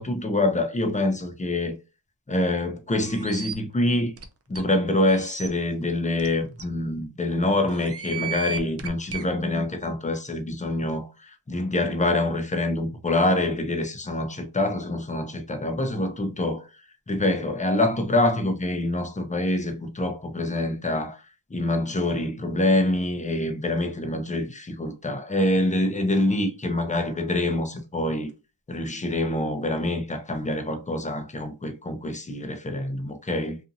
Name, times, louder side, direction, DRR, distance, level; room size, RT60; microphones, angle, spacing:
voice 1, 0.0-1.8 2.3-4.2 4.5-16.7 17.1-21.2 21.5-28.3 28.7-33.6, left 1 dB, 15° left, 0.6 m, -25 dB
sound 1, 3.1-3.5 4.2-4.3 4.5-4.6 5.1-5.5 6.2-6.3 6.6-6.7 7.7-9.2, right 6 dB, 30° right, 0.4 m, -34 dB
2.6 x 2.5 x 2.7 m
cardioid pair, 80°, 50 cm